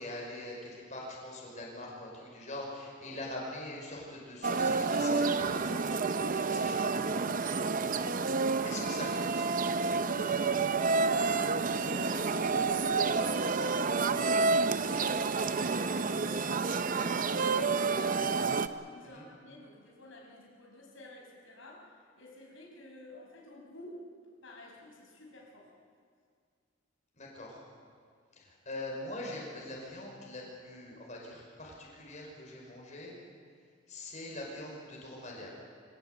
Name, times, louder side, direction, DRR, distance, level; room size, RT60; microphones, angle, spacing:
voice 1, 0.0-6.9 8.6-9.5 19.0-19.3 27.2-27.6 28.4-33.2 33.9-35.5, left 1 dB, 40° left, -2 dB, 5.6 m, -43 dB
sound 1, 4.4-18.7, right 4 dB, 45° right, 0.7 m, -29 dB
voice 2, 10.9-14.6 14.9-18.6 18.9-24.0 24.4-25.7, left 1 dB, 85° left, -1 dB, 5.5 m, -50 dB
25.5 x 17.5 x 8.0 m, 2.1 s
head